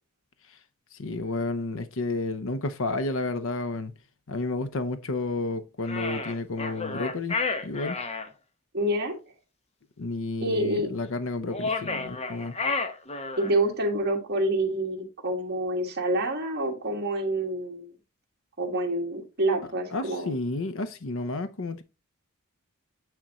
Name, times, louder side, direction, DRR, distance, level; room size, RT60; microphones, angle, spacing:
voice 1, 0.9-3.9 4.3-7.4 7.6-8.0 10.0-12.5 19.9-21.8, left 2 dB, 65° left, 0.7 m, -31 dB
sound 1, 5.8-8.3 11.5-13.6, left 4 dB, 30° left, 0.8 m, -31 dB
voice 2, 8.7-9.1 10.4-10.9 13.4-17.9 18.6-20.3, right 1 dB, 50° right, 1.7 m, -27 dB
8.9 x 3.6 x 4.1 m
head